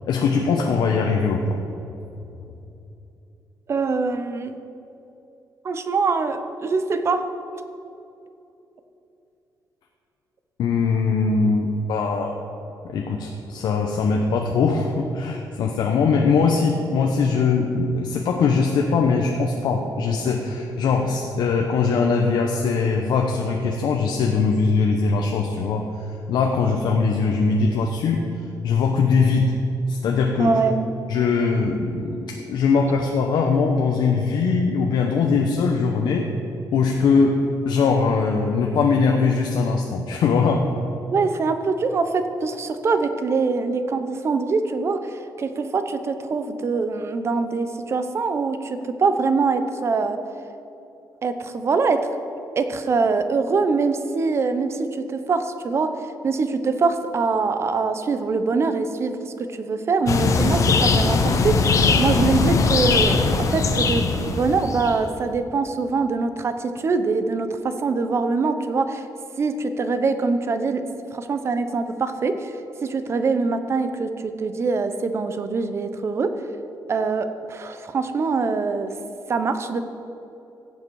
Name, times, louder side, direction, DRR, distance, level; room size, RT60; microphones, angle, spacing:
voice 1, 0.1-1.6 10.6-12.3 12.8-25.8 26.3-28.3 28.6-29.6 29.9-30.5 31.1-36.3 36.7-37.4 37.6-40.7, left 4 dB, 80° left, 1 dB, 0.9 m, -21 dB
voice 2, 3.7-4.6 5.6-7.3 30.4-30.9 41.1-50.2 51.2-52.0 52.6-55.9 56.2-69.1 69.4-70.8 71.1-76.3 76.9-78.9 79.3-79.8, right 4 dB, 35° right, 9 dB, 0.8 m, -23 dB
sound 1, 60.1-65.0, left 4 dB, 45° left, 0.8 m, -20 dB
16.0 x 7.6 x 4.8 m, 2.8 s
cardioid pair, 155°, 8 cm